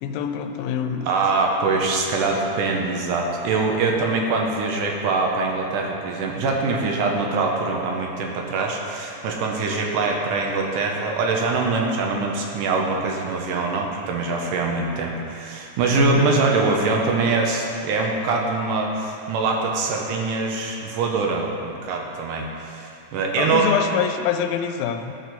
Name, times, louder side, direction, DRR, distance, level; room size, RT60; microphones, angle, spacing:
voice 1, 0.0-1.1 15.9-16.3 23.4-25.1, left 8 dB, 85° left, 7 dB, 2.3 m, -25 dB
voice 2, 1.0-23.7, right 3 dB, 75° right, 0 dB, 2.2 m, -23 dB
11.0 x 6.4 x 4.0 m, 2.6 s
omnidirectional pair, 4.1 m